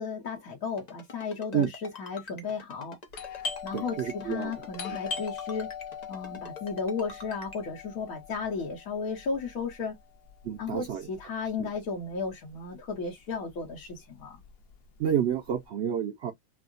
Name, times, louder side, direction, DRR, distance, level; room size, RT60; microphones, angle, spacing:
voice 1, 0.0-3.0 3.6-5.7 6.1-10.0 10.6-14.4, left 5 dB, 65° left, 1.3 m, -34 dB
Ringtone, 0.8-7.6, left 3 dB, 35° left, 0.7 m, -45 dB
Doorbell, 3.1-12.5 12.8-12.9 13.5-13.8 14.2-15.5, left 6 dB, 80° left, 1.3 m, -41 dB
voice 2, 3.7-4.5 4.9-5.0 10.4-11.0 11.6-11.7 15.0-16.3, right 9 dB, 85° right, 0.5 m, -29 dB
4.5 x 2.0 x 2.3 m
omnidirectional pair, 1.7 m